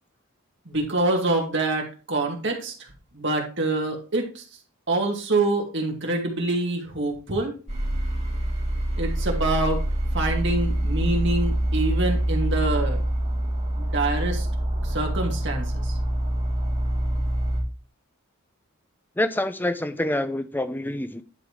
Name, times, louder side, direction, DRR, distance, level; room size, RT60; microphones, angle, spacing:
voice 1, 0.7-2.9 3.1-4.4 4.9-7.5 9.0-9.8 10.1-13.0 13.8-14.5 14.8-16.0, right 2 dB, 55° right, 2.3 m, -26 dB
sound 1, 7.7-17.6, right 1 dB, 30° right, 2.3 m, -25 dB
voice 2, 19.2-21.2, left 1 dB, 10° left, 0.5 m, -26 dB
10.5 x 4.0 x 4.8 m
head